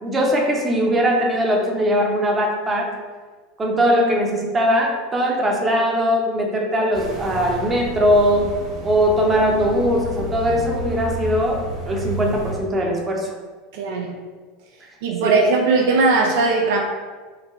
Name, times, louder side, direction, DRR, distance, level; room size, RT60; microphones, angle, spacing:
voice 1, 0.0-2.9 3.6-8.5 8.8-13.3 15.2-15.3, equal, 25° right, 0 dB, 0.7 m, -20 dB
sound 1, 6.9-12.6, right 2 dB, 40° right, 1.3 m, -31 dB
voice 2, 13.7-14.1 15.0-16.8, right 3 dB, 70° right, 0 dB, 0.4 m, -18 dB
3.2 x 2.2 x 3.5 m, 1.4 s
hypercardioid pair, 90°, 0 cm